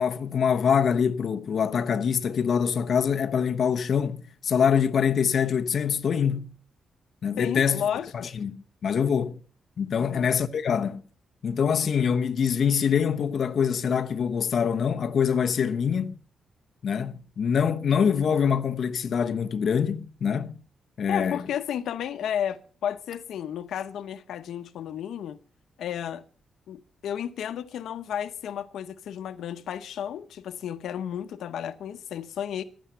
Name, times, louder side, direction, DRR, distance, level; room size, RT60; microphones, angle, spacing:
voice 1, 0.0-6.5 7.2-7.8 8.4-9.4 9.8-11.0 11.4-16.2 16.8-20.6 21.0-21.4, left 7 dB, 50° left, 0.8 m, -24 dB
voice 2, 7.4-8.3 10.0-10.3 21.1-25.4 25.8-26.2 26.7-32.6, left 9 dB, 90° left, 0.8 m, -32 dB
15.5 x 11.0 x 5.6 m
wide cardioid pair, 160°, 0 cm